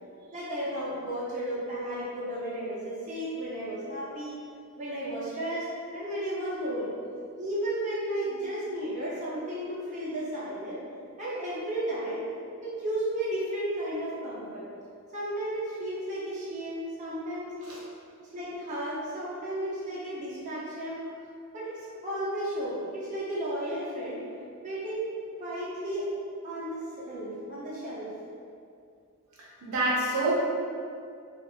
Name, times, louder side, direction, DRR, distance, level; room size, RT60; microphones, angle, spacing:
voice 1, 0.3-4.4 4.8-6.9 7.4-10.8 11.2-12.2 12.6-14.6 15.1-17.5 18.3-21.0 21.5-24.2 24.6-25.1 25.4-26.1 26.4-28.1, right 1 dB, 35° right, -9 dB, 0.7 m, -33 dB
voice 2, 29.4-30.3, right 2 dB, 80° right, -5 dB, 0.6 m, -27 dB
2.8 x 2.5 x 2.6 m, 2.4 s
head